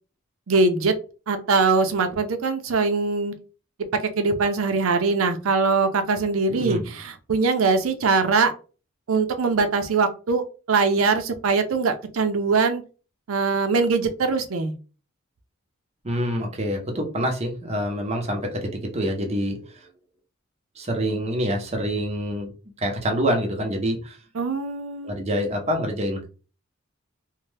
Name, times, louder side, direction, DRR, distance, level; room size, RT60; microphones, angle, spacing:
voice 1, 0.5-0.9 1.3-3.3 4.2-8.5 9.1-10.4 10.7-12.8 13.3-14.7 24.4-25.2, right 4 dB, 85° right, 0.5 m, -22 dB
voice 2, 6.5-6.8 16.0-19.9 20.8-22.5 22.8-24.2 25.0-26.3, equal, 30° right, 0.7 m, -26 dB
2.7 x 2.1 x 3.2 m
head